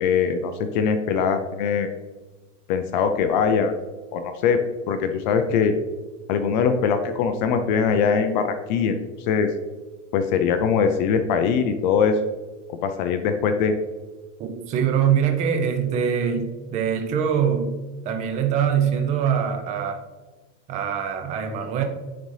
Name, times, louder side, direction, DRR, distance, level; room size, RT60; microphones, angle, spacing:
voice 1, 0.0-1.9 2.7-3.7 4.1-4.6 4.9-5.7 6.3-9.0 9.3-9.5 10.1-12.2 12.8-13.7, left 6 dB, 40° left, 8 dB, 0.4 m, -22 dB
voice 2, 14.4-17.8 18.0-20.0 20.7-21.8, right 8 dB, 20° right, 5 dB, 0.5 m, -23 dB
9.3 x 3.9 x 3.2 m, 1.3 s
supercardioid pair, 160°, 38 cm